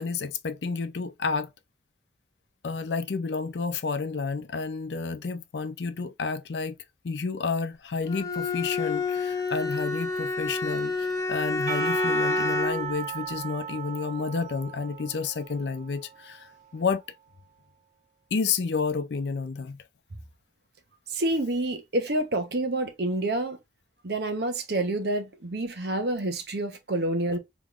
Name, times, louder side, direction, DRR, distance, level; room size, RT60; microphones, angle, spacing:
voice 1, 0.0-1.5 2.6-6.8 7.0-17.0 18.3-19.8 27.3-27.4, left 4 dB, 80° left, 0.5 m, -30 dB
Bowed string instrument, 8.1-12.9, left 3 dB, 20° left, 0.6 m, -28 dB
Percussion / Church bell, 11.7-16.9, right 8 dB, 40° right, 1.4 m, -37 dB
voice 2, 21.1-23.6 24.0-27.4, right 1 dB, 70° right, 0.9 m, -28 dB
3.4 x 3.1 x 2.4 m
head